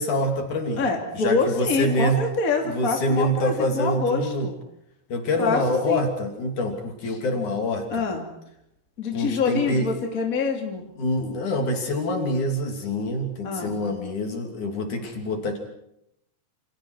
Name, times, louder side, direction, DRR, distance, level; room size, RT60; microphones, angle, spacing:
voice 1, 0.0-0.8 1.1-2.2 2.6-4.5 5.1-7.9 9.1-9.9 11.0-15.6, left 1 dB, 50° left, 3 dB, 4.3 m, -25 dB
voice 2, 0.8-4.5 5.4-6.0 7.9-8.3 9.0-10.8 13.4-13.7, left 4 dB, 25° left, 2 dB, 2.5 m, -26 dB
28.0 x 28.0 x 4.8 m, 0.79 s
omnidirectional pair, 4.8 m